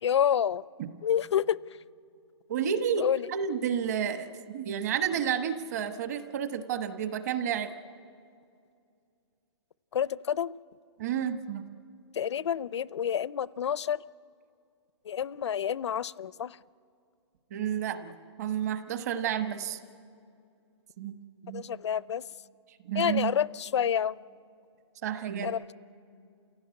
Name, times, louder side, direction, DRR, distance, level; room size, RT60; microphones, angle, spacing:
voice 1, 0.0-0.6 1.0-1.6 3.0-3.3 9.9-10.5 12.1-14.0 15.1-16.6 21.5-22.2 23.0-24.1 25.4-25.7, left 9 dB, 65° left, 0.5 m, -28 dB
voice 2, 2.5-7.7 11.0-11.7 17.5-19.8 21.0-21.2 21.4-21.6 22.8-23.3 25.0-25.5, right 8 dB, 35° right, 1.1 m, -31 dB
29.0 x 16.5 x 9.5 m
hypercardioid pair, 175°, 16 cm